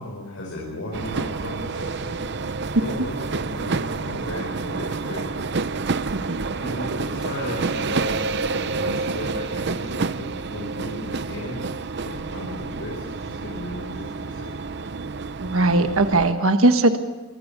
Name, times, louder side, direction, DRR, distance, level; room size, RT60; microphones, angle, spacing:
voice 1, 0.0-5.5 6.6-8.3 8.6-11.6 12.1-14.6, left 1 dB, 65° left, -3 dB, 5.2 m, -35 dB
sound 1, 0.9-16.3, right 4 dB, 50° right, 0.7 m, -29 dB
voice 2, 6.1-6.4 15.4-17.0, right 2 dB, 70° right, 7 dB, 1.4 m, -19 dB
24.0 x 21.0 x 6.9 m, 1.2 s
head